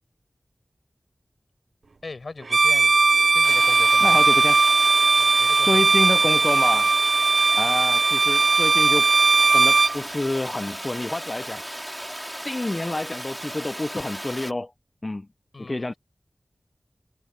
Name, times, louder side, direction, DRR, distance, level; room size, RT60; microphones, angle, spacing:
voice 1, 2.0-2.9 3.3-4.2 5.2-6.0 15.5-16.0, left 3 dB, 75° left, 6.4 m, -40 dB
Bowed string instrument, 2.5-10.0, right 3 dB, 80° right, 0.5 m, -18 dB
Water, 3.4-14.5, equal, 10° right, 4.6 m, -36 dB
voice 2, 4.0-4.6 5.6-6.9 7.6-9.1 9.5-11.6 12.4-14.7 15.0-15.3 15.6-15.9, left 2 dB, 40° left, 0.5 m, -28 dB
wide cardioid pair, 50°, 0 cm